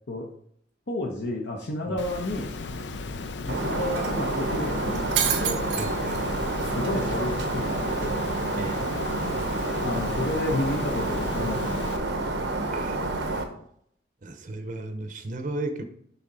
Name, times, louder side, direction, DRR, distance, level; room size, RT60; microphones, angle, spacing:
voice 1, 0.9-2.5 3.4-5.7 6.7-8.3 9.8-11.9, left 1 dB, 70° left, 0 dB, 0.9 m, -31 dB
Water, 2.0-12.0, left 3 dB, 85° left, 0.6 m, -35 dB
Shatter, 3.5-13.4, right 3 dB, 85° right, 1.0 m, -28 dB
voice 2, 5.8-6.2 8.6-8.8 12.7-13.0 14.2-15.8, right 2 dB, 45° right, 7 dB, 0.7 m, -34 dB
6.8 x 5.5 x 4.0 m, 0.67 s
head